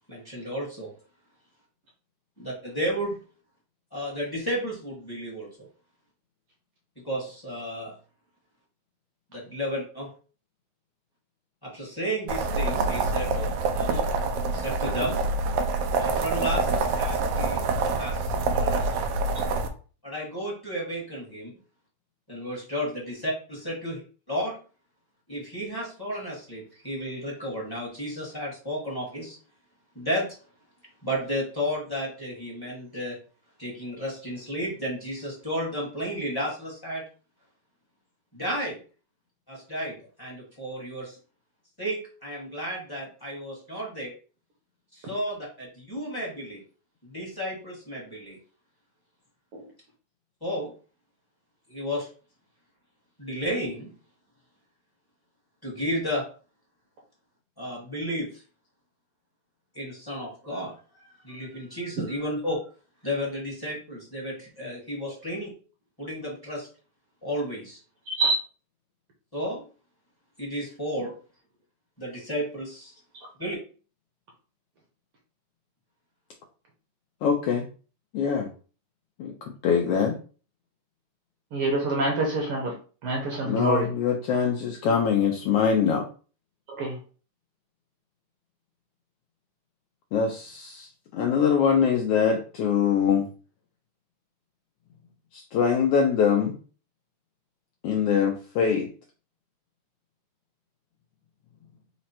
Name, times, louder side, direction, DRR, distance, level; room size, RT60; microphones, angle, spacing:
voice 1, 0.1-0.9 2.4-3.2 3.9-5.7 7.0-7.9 9.3-10.1 11.6-14.0 14.5-15.2 16.0-17.6 18.0-19.1 20.0-21.5 22.3-24.0 24.3-24.5 25.3-29.4 29.9-30.3 31.0-33.2 33.6-37.0 38.3-38.8 39.5-41.2 41.8-44.1 44.9-46.6 47.0-48.4 50.4-50.7 51.7-52.1 53.2-53.9 55.6-56.2 57.6-58.4 59.7-60.8 61.2-62.6 63.0-65.5 66.0-66.7 67.2-67.8 69.3-69.6 70.4-71.1 72.0-72.9 73.4-73.6, equal, 15° left, -5 dB, 0.8 m, -32 dB
sound 1, 12.3-19.7, right 3 dB, 85° right, 1.3 m, -26 dB
voice 2, 68.1-68.4 81.5-82.7 83.0-83.9 86.8-87.0, right 2 dB, 65° right, -1 dB, 1.5 m, -26 dB
voice 3, 77.2-77.6 78.1-78.5 79.2-79.3 79.6-80.2 83.4-86.0 90.1-93.3 95.3-96.5 97.8-98.9, left 7 dB, 85° left, 2 dB, 1.4 m, -23 dB
4.9 x 2.1 x 4.3 m, 0.38 s
omnidirectional pair, 3.3 m